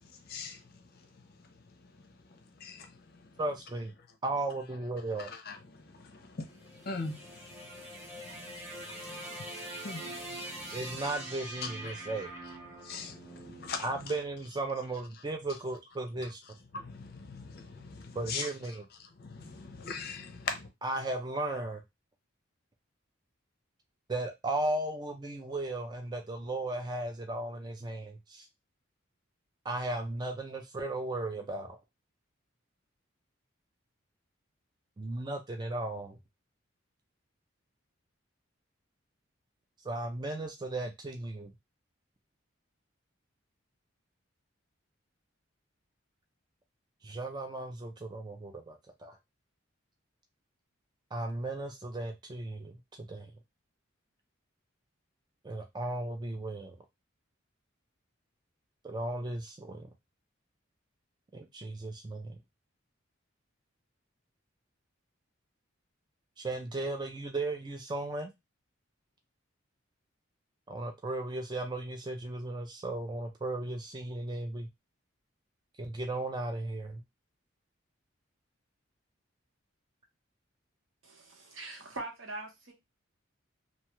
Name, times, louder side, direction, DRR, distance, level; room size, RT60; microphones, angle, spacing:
voice 1, 0.3-0.6 2.6-2.9 5.5-10.8 11.6-11.7 12.8-13.9 16.7-18.5 19.2-20.7, left 4 dB, 50° left, 0.5 m, -41 dB
voice 2, 3.4-3.9 4.2-5.3 10.7-12.3 13.8-16.4 18.2-18.8 20.8-21.8 24.1-28.5 29.6-31.8 35.0-36.2 39.8-41.5 47.0-49.2 51.1-53.3 55.4-56.8 58.8-59.9 61.3-62.4 66.4-68.3 70.7-74.7 75.8-77.0, right 2 dB, 20° right, 0.3 m, -36 dB
sound 1, 6.5-14.8, right 1 dB, ahead, 0.9 m, -44 dB
voice 3, 81.0-82.7, right 2 dB, 70° right, 1.0 m, -42 dB
2.7 x 2.2 x 2.9 m
head